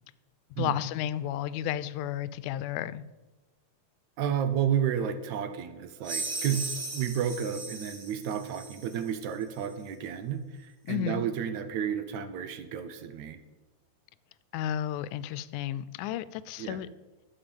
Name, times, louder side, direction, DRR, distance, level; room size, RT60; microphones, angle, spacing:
voice 1, 0.6-3.1 10.9-11.2 14.5-16.9, left 11 dB, 90° left, 17 dB, 2.0 m, -32 dB
voice 2, 4.2-13.4 16.6-16.8, right 8 dB, 75° right, 10 dB, 2.2 m, -31 dB
sound 1, 6.0-9.0, right 3 dB, 35° right, 2.0 m, -37 dB
11.5 x 7.3 x 6.9 m, 1.2 s
omnidirectional pair, 3.4 m